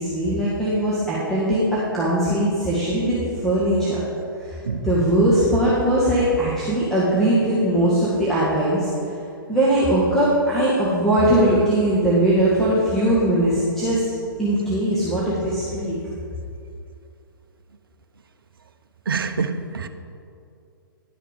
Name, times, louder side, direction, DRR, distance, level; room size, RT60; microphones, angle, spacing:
voice 1, 0.0-3.2 3.4-4.0 4.4-8.9 9.5-14.0 14.4-16.0, right 1 dB, 5° left, -10 dB, 1.7 m, -20 dB
voice 2, 19.1-19.9, right 5 dB, 75° right, 8 dB, 0.6 m, -25 dB
11.0 x 6.6 x 5.2 m, 2.6 s
figure-of-eight pair, 120°, 12 cm